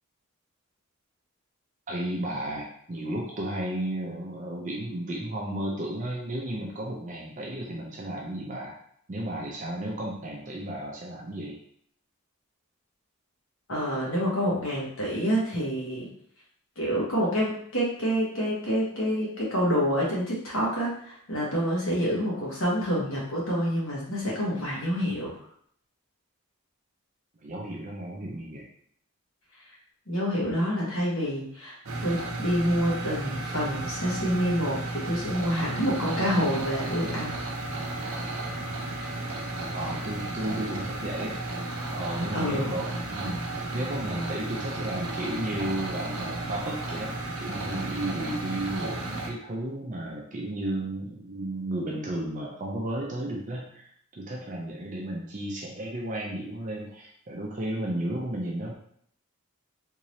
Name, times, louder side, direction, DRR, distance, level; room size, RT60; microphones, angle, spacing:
voice 1, 1.9-8.8 9.1-11.6 27.4-28.7 39.7-41.4 41.9-58.7, right 1 dB, 35° right, -2 dB, 0.5 m, -33 dB
voice 2, 13.7-16.1 16.8-25.4 30.1-31.8 32.0-37.4 42.3-42.7, equal, 65° left, -5 dB, 1.4 m, -27 dB
sound 1, 31.9-49.3, right 2 dB, 75° right, 0.7 m, -34 dB
3.7 x 2.7 x 3.1 m, 0.64 s
head